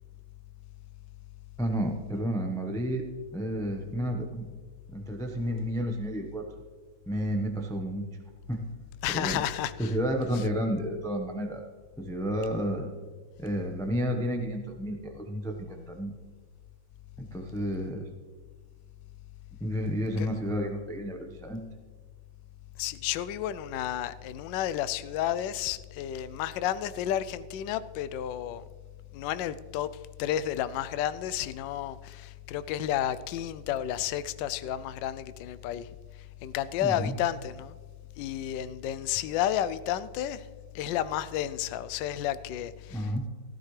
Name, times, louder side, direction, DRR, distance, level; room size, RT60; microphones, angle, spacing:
voice 1, 1.6-3.0 3.3-4.5 4.9-6.4 7.1-8.0 8.5-8.6 9.1-9.4 9.8-11.6 12.0-12.9 13.4-16.1 17.2-18.1 19.6-21.6 36.8-37.1 42.9-43.2, equal, 5° left, 0.5 m, -31 dB
voice 2, 9.0-9.9 20.2-20.3 22.8-28.6 29.1-29.9 30.2-35.9 36.4-37.8 38.2-40.5 40.7-43.0, left 11 dB, 75° left, 1.1 m, -31 dB
15.5 x 13.0 x 3.3 m
omnidirectional pair, 2.3 m